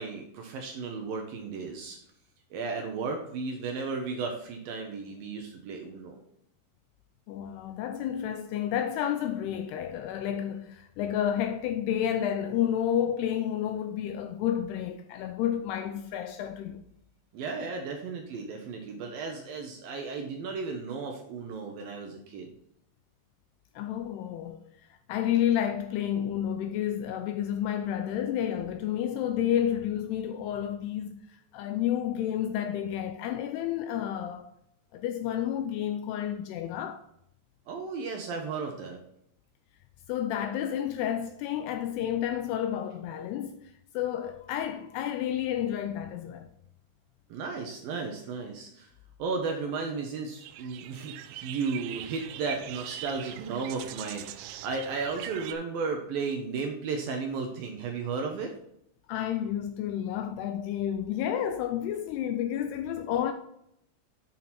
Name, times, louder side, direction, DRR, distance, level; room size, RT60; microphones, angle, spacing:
voice 1, 0.0-2.0 2.5-6.2 17.3-22.5 37.7-39.0 47.3-48.9 49.2-58.5, right 4 dB, 70° right, 2.3 m, -34 dB
voice 2, 7.3-16.8 23.8-24.6 25.1-31.2 31.5-34.5 34.9-37.0 40.1-43.6 43.9-46.5 59.1-63.3, left 10 dB, 80° left, 2.4 m, -30 dB
sound 1, 50.4-55.5, right 12 dB, 85° right, 2.9 m, -42 dB
8.7 x 6.2 x 4.3 m
omnidirectional pair, 5.1 m